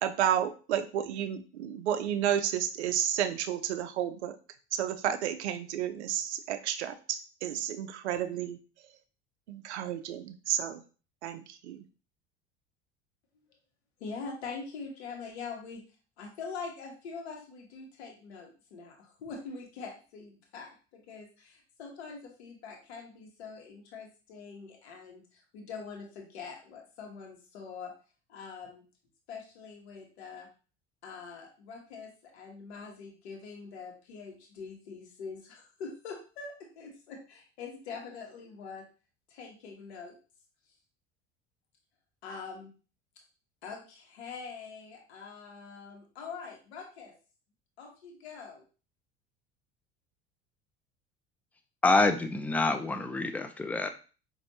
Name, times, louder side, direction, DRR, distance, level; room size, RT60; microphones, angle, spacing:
voice 1, 0.0-4.4 4.7-6.9 7.4-8.6 9.5-10.8 11.2-11.4 11.7-11.8, right 10 dB, 75° right, 9 dB, 0.5 m, -31 dB
voice 2, 14.0-15.8 16.2-27.9 28.3-28.8 29.3-30.5 31.0-38.8 39.3-40.2 42.2-42.7 43.6-47.1 47.8-48.6, left 5 dB, 70° left, 0 dB, 1.2 m, -44 dB
voice 3, 51.8-53.9, left 3 dB, 5° left, 8 dB, 0.3 m, -26 dB
5.1 x 2.6 x 2.7 m, 0.36 s
figure-of-eight pair, 65°, 34 cm